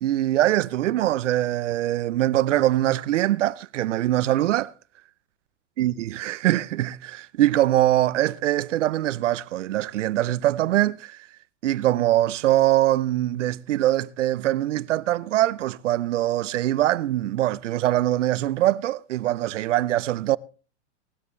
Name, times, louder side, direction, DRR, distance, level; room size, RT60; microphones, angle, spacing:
voice 1, 0.0-4.7 5.8-11.3 11.6-20.4, right 14 dB, 90° right, 0.6 m, -23 dB
18.5 x 12.5 x 3.2 m
hypercardioid pair, 140°, 36 cm